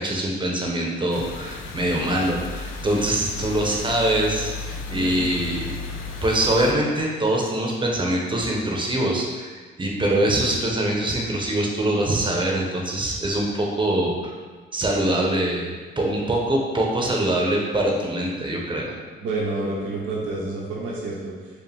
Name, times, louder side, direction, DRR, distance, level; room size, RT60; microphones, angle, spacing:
voice 1, 0.0-5.8 6.2-14.3 14.7-18.9, right 1 dB, 25° right, -1 dB, 0.9 m, -23 dB
sound 1, 1.1-6.7, left 4 dB, 80° left, 0.5 m, -34 dB
voice 2, 4.9-5.2 19.2-21.3, right 2 dB, 80° right, -5 dB, 1.0 m, -28 dB
4.7 x 2.5 x 3.5 m, 1.4 s
cardioid pair, 90°, 20 cm